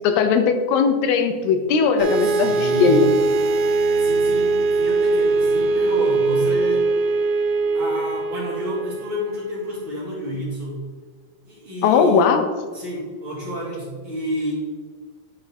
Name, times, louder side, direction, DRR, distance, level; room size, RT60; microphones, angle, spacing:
voice 1, 0.0-3.1 11.8-12.5, left 5 dB, 85° left, 6 dB, 2.8 m, -18 dB
sound 1, 2.0-9.7, right 3 dB, 80° right, 2.4 m, -21 dB
voice 2, 2.2-3.1 3.9-6.9 7.7-10.8 11.5-12.2 12.7-14.5, equal, 40° right, -6 dB, 2.2 m, -30 dB
10.5 x 4.8 x 4.2 m, 1.5 s
omnidirectional pair, 4.5 m